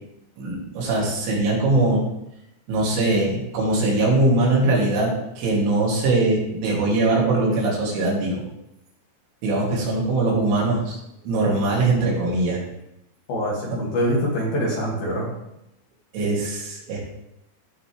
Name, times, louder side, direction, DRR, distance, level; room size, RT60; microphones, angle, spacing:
voice 1, 0.4-2.0 2.7-8.4 9.4-11.0 11.2-12.6 13.7-13.8 16.1-17.0, right 2 dB, 75° right, -4 dB, 5.0 m, -21 dB
voice 2, 13.3-15.3, equal, 55° left, -5 dB, 3.6 m, -24 dB
16.5 x 5.6 x 3.3 m, 0.85 s
omnidirectional pair, 5.6 m